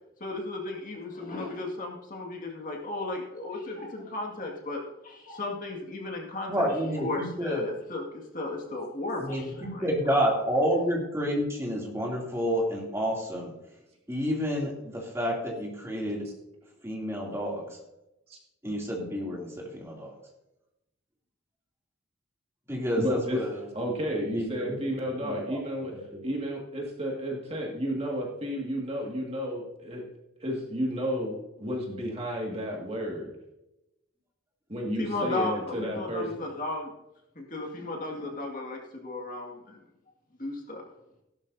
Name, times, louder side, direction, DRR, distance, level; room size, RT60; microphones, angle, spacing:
voice 1, 0.2-6.7 7.0-9.9 35.0-36.9 37.4-39.8 40.4-40.8, left 2 dB, 40° left, 0 dB, 2.0 m, -35 dB
voice 2, 6.5-7.6 9.2-13.5 14.1-16.3 16.8-17.7 18.6-20.1 22.7-23.6 24.3-24.8 25.2-25.6 25.9-26.2, equal, 15° right, -2 dB, 2.8 m, -29 dB
voice 3, 23.0-23.4 23.7-25.9 26.2-30.0 30.4-33.3 34.7-36.4, equal, 30° right, -1 dB, 2.0 m, -32 dB
16.5 x 12.0 x 2.7 m, 0.91 s
head